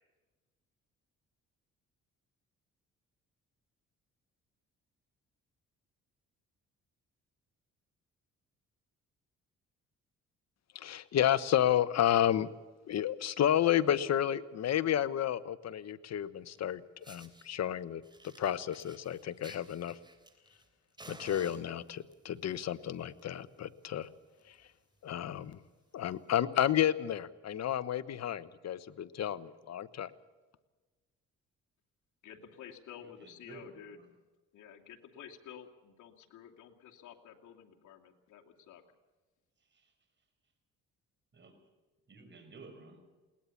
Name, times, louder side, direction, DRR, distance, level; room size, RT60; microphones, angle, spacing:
voice 1, 10.7-12.5 12.9-16.8 17.1-18.0 18.4-20.0 21.1-24.1 24.5-24.6 25.0-25.6 25.9-30.1, left 10 dB, 60° left, 14 dB, 1.1 m, -31 dB
Fire, 16.5-16.6 17.0-17.5 18.0-20.7 21.0-22.1 23.0-23.2 23.5-23.6 24.0-24.1 24.4-24.6 25.2-25.3 26.2-26.3, right 2 dB, 15° right, 3.4 m, -54 dB
voice 2, 32.2-34.0 34.5-38.8, left 9 dB, 75° left, 1 dB, 2.7 m, -51 dB
voice 3, 33.0-34.1 39.6-39.9 41.3-41.6 42.1-43.0, right 3 dB, 35° right, 6 dB, 5.5 m, -53 dB
21.5 x 18.5 x 7.2 m, 1.2 s
cardioid pair, 90°, 30 cm